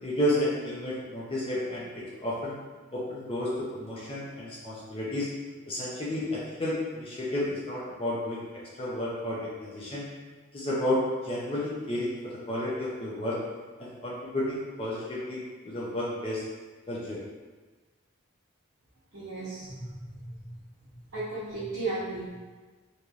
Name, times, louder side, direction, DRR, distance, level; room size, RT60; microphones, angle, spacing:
voice 1, 0.0-2.6 2.9-5.3 5.7-10.1 10.5-13.4 13.8-16.4 16.9-17.2, left 1 dB, 25° left, -7 dB, 0.5 m, -31 dB
voice 2, 19.1-20.5 20.8-22.4, right 3 dB, 70° right, -12 dB, 0.8 m, -36 dB
3.1 x 2.7 x 2.3 m, 1.3 s
head